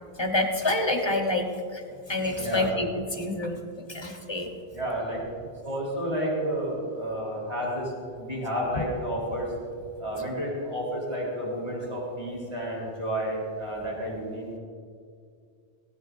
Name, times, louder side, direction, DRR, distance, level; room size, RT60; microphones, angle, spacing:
voice 1, 0.2-1.8 2.1-4.5, left 2 dB, 25° left, 3 dB, 1.2 m, -27 dB
voice 2, 2.4-2.7 4.7-5.2 5.6-9.5 10.0-14.6, equal, 25° right, -5 dB, 4.1 m, -31 dB
18.0 x 16.0 x 2.7 m, 2.2 s
omnidirectional pair, 1.1 m